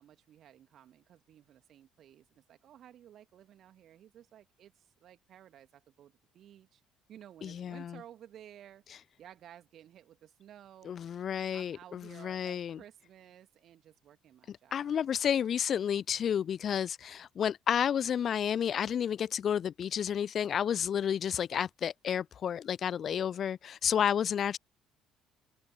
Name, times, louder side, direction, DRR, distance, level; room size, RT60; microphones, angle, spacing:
voice 1, 0.0-6.8 7.1-14.9, right 11 dB, 50° right, 1.9 m, -55 dB
voice 2, 7.4-8.0 10.9-12.8 14.5-24.6, left 8 dB, 45° left, 0.5 m, -31 dB
figure-of-eight pair, 50°, 0 cm